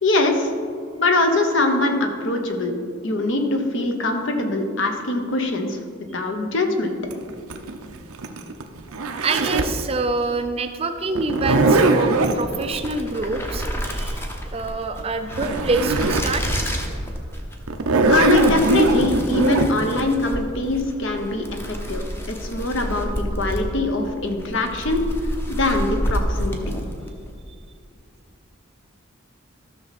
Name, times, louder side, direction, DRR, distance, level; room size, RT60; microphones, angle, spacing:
voice 1, 0.0-0.5 1.0-2.7 3.0-5.8 6.1-7.0 18.1-25.0 25.5-26.6, left 2 dB, 60° left, 5 dB, 1.0 m, -23 dB
Zipper (clothing), 7.1-9.8 11.1-12.4 15.0-15.1 15.3-16.3 16.8-16.9 17.7-19.7, right 2 dB, 85° right, 0.7 m, -20 dB
voice 2, 9.2-16.4, right 3 dB, 25° right, 8 dB, 0.4 m, -26 dB
sound 1, 12.4-27.2, equal, 10° left, 0.8 m, -29 dB
13.0 x 6.3 x 4.2 m, 2.2 s
head